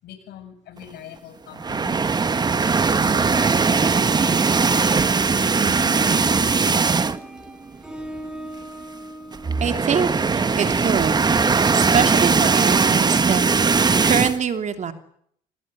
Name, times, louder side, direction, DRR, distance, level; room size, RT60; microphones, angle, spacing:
voice 1, 0.0-2.1 2.4-6.3, left 10 dB, 75° left, 8 dB, 7.9 m, -42 dB
sound 1, 1.6-7.4 7.7-7.9 8.2-8.3 9.3-14.4, right 4 dB, 25° right, 1.2 m, -19 dB
sound 2, 5.6-11.1, equal, 5° right, 5.5 m, -39 dB
voice 2, 9.6-10.1 10.3-11.4 11.7-14.9, right 7 dB, 45° right, 8 dB, 3.0 m, -24 dB
27.0 x 19.5 x 9.8 m, 0.68 s
cardioid pair, 110°, 17 cm